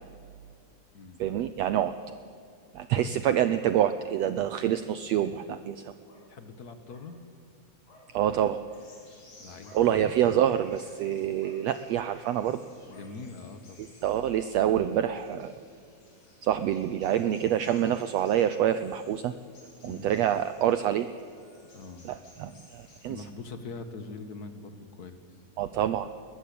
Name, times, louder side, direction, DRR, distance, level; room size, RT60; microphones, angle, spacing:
voice 1, 1.2-2.0 2.7-5.9 8.1-8.6 9.7-12.6 14.0-15.5 16.4-19.3 19.8-21.1 22.0-23.3 25.6-26.1, right 10 dB, 80° right, 11 dB, 1.5 m, -26 dB
sound 1, 4.5-4.7 5.2-5.3 6.0-6.3 6.9-7.0 7.9-8.0 8.5-8.8 9.6-9.8 10.4-10.7 11.4-11.6 12.1-12.3 12.9-13.1, left 2 dB, 65° left, 7.4 m, -56 dB
voice 2, 6.3-7.2 9.4-10.0 12.8-13.9 19.8-20.1 21.7-22.1 23.1-25.1, left 4 dB, 50° left, 9 dB, 1.2 m, -43 dB
sound 2, 8.7-23.1, left 2 dB, 85° left, 7.1 m, -58 dB
22.0 x 20.0 x 8.6 m, 2.3 s
omnidirectional pair, 3.8 m